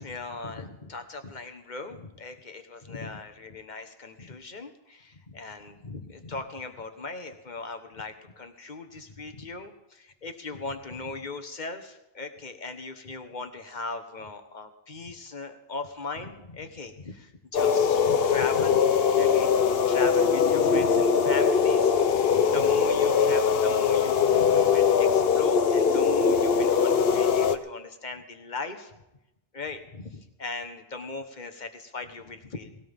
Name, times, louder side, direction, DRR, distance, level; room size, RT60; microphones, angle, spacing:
voice 1, 0.0-18.8 19.1-21.9 22.3-28.9 29.5-32.8, left 3 dB, 50° left, 7 dB, 1.4 m, -38 dB
sound 1, 17.5-27.6, left 6 dB, 70° left, 1.0 m, -22 dB
19.5 x 17.0 x 3.6 m, 0.92 s
omnidirectional pair, 1.0 m